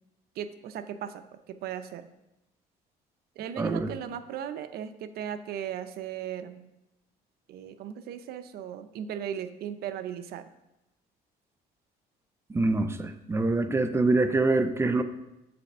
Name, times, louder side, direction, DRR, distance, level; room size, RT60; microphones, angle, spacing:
voice 1, 0.4-2.1 3.4-6.7 7.5-10.4, right 9 dB, 65° right, 10 dB, 0.5 m, -37 dB
voice 2, 3.6-3.9 12.5-15.0, right 2 dB, 15° right, 9 dB, 0.5 m, -25 dB
6.8 x 4.1 x 5.4 m, 0.90 s
cardioid pair, 110°, 17 cm